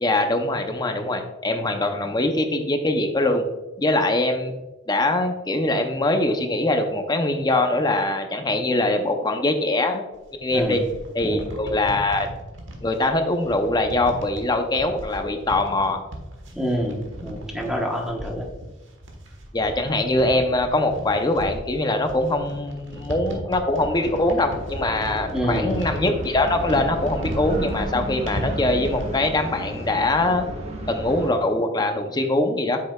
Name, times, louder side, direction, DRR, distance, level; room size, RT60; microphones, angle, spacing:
voice 1, 0.0-3.4 3.8-4.6 4.9-10.1 10.4-10.8 11.1-12.3 12.8-16.0 19.5-30.5 30.9-32.8, left 2 dB, 20° left, 6 dB, 0.6 m, -23 dB
sound 1, 10.1-29.2, right 1 dB, 65° right, 1.4 m, -37 dB
voice 2, 16.5-18.5 25.3-25.8, equal, 5° right, 0 dB, 1.0 m, -27 dB
sound 2, 23.8-31.3, right 1 dB, 30° right, 1.2 m, -33 dB
8.2 x 6.5 x 2.3 m, 1.1 s
head